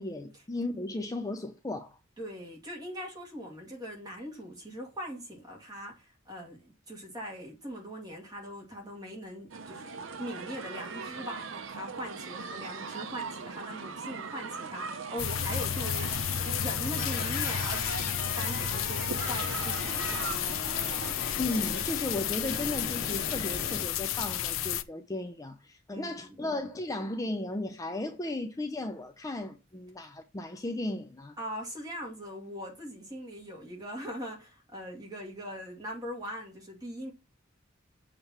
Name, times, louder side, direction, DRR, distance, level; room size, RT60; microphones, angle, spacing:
voice 1, 0.0-2.0 21.4-31.3, left 2 dB, 15° left, 0.5 m, -35 dB
voice 2, 2.2-9.9 10.2-20.6 25.9-26.4 31.4-37.1, equal, 20° right, 2.3 m, -41 dB
sound 1, 9.5-21.1, right 5 dB, 70° right, 0.7 m, -40 dB
sound 2, 15.2-24.8, left 10 dB, 80° left, 0.5 m, -32 dB
sound 3, 17.0-23.9, left 4 dB, 45° left, 1.8 m, -39 dB
7.1 x 3.4 x 5.8 m
head